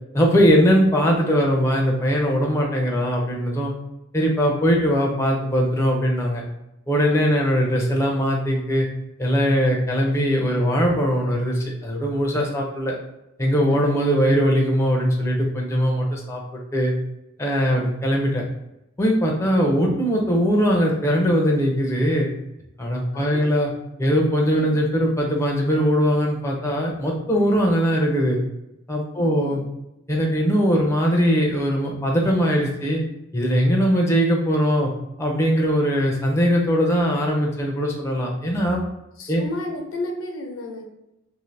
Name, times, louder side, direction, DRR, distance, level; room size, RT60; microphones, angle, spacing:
voice 1, 0.1-3.7 4.1-6.4 6.9-8.9 9.2-12.9 13.4-16.4 16.7-16.9 17.4-18.4 19.0-22.3 22.8-23.7 24.0-28.4 28.9-29.6 30.1-33.0 33.3-34.9 35.2-38.8 39.3-39.4, equal, 15° left, -1 dB, 0.5 m, -20 dB
voice 2, 23.1-23.6 24.6-24.8 29.2-29.6 39.2-40.9, left 1 dB, 80° left, 2 dB, 0.6 m, -33 dB
2.6 x 2.5 x 3.2 m, 0.90 s
head